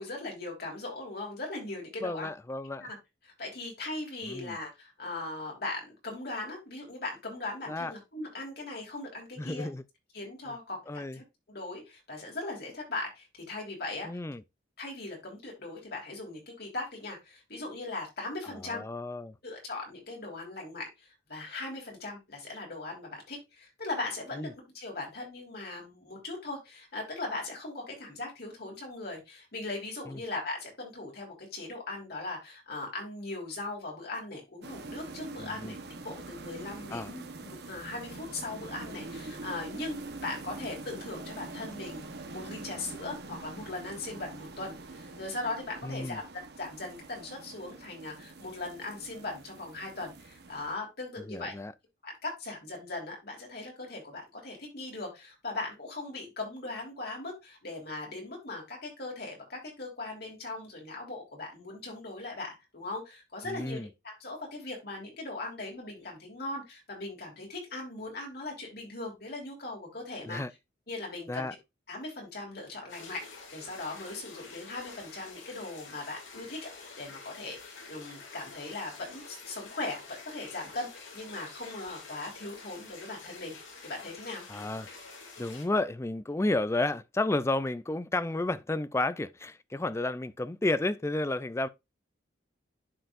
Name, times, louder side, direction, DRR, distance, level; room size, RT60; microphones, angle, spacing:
voice 1, 0.0-2.3 2.8-3.0 3.2-9.7 10.1-14.1 14.8-18.9 19.4-24.5 24.7-35.8 36.0-51.5 52.0-70.4 70.9-71.5 71.9-83.5 83.8-84.4, left 2 dB, 55° left, 3.4 m, -39 dB
voice 2, 2.0-2.9 4.2-4.6 7.7-7.9 9.4-9.8 10.9-11.2 14.0-14.4 18.6-19.3 24.4-24.5 30.1-30.2 35.4-35.7 36.9-37.1 45.8-46.2 51.3-51.7 63.5-63.9 70.2-70.5 71.3-71.5 84.5-84.9 85.4-91.7, left 2 dB, 15° left, 0.4 m, -32 dB
sound 1, 34.6-50.7, right 3 dB, 55° right, 1.1 m, -44 dB
sound 2, 72.9-85.6, left 4 dB, 85° left, 2.3 m, -48 dB
11.5 x 4.6 x 2.5 m
head